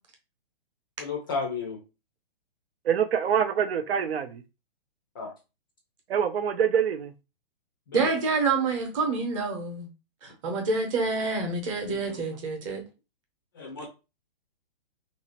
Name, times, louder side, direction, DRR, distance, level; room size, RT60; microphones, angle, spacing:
voice 1, 1.0-1.8 5.2-5.3 7.9-8.1 11.9-12.2 13.6-13.9, left 5 dB, 20° left, 0.4 m, -33 dB
voice 2, 2.9-4.4 6.1-7.1, right 8 dB, 80° right, 0.6 m, -25 dB
voice 3, 7.9-9.9 10.2-12.8, right 4 dB, 30° right, 0.9 m, -27 dB
2.9 x 2.7 x 2.9 m
hypercardioid pair, 160°, 30 cm